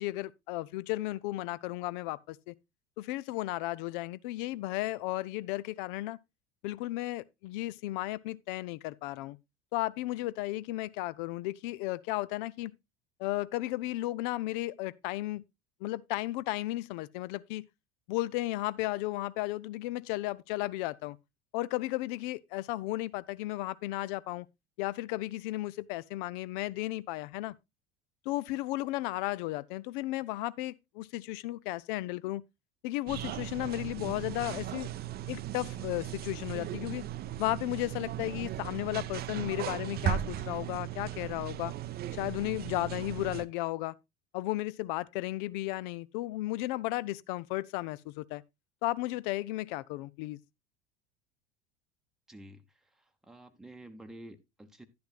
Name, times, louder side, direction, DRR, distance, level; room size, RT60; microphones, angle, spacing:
voice 1, 0.0-2.5 3.0-6.2 6.6-9.4 9.7-12.7 13.2-15.4 15.8-17.6 18.1-21.2 21.5-24.5 24.8-27.5 28.3-32.4 32.8-34.9 35.3-37.0 37.4-41.7 42.1-43.9 44.3-48.4 48.8-50.4, left 17 dB, 50° left, 0.5 m, -34 dB
sound 1, 33.1-43.5, right 11 dB, 30° right, 0.6 m, -37 dB
voice 2, 52.3-52.6 52.9-54.9, right 1 dB, ahead, 0.9 m, -50 dB
11.0 x 10.5 x 2.3 m
figure-of-eight pair, 75°, 34 cm